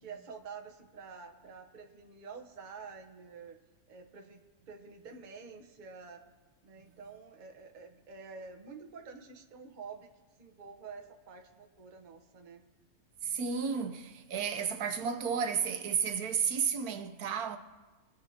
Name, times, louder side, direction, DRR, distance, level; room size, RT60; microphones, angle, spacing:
voice 1, 0.0-3.6 3.9-4.4 4.7-6.2 6.6-10.1 10.4-12.6, right 5 dB, 35° right, 0.9 m, -48 dB
voice 2, 13.2-17.6, right 6 dB, 80° right, 1.3 m, -32 dB
21.5 x 9.2 x 2.8 m
omnidirectional pair, 1.6 m